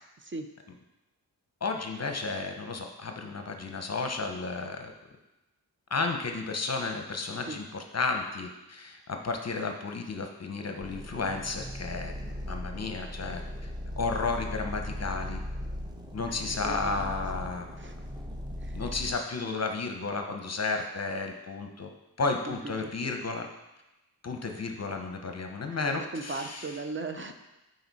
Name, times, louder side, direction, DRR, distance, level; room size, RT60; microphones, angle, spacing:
voice 1, 1.6-4.9 5.9-12.1 12.4-13.4 14.0-15.4 16.1-17.7 18.7-21.9 22.2-23.5 24.2-26.8, left 4 dB, 40° left, 4 dB, 0.8 m, -33 dB
sound 1, 10.8-19.2, left 1 dB, 10° right, 0.9 m, -38 dB
voice 2, 16.6-17.1 17.8-17.9 18.6-18.8 22.5-23.1 25.8-27.3, right 3 dB, 30° right, 6 dB, 0.6 m, -38 dB
9.5 x 4.1 x 4.1 m, 0.98 s
cardioid pair, 85°, 39 cm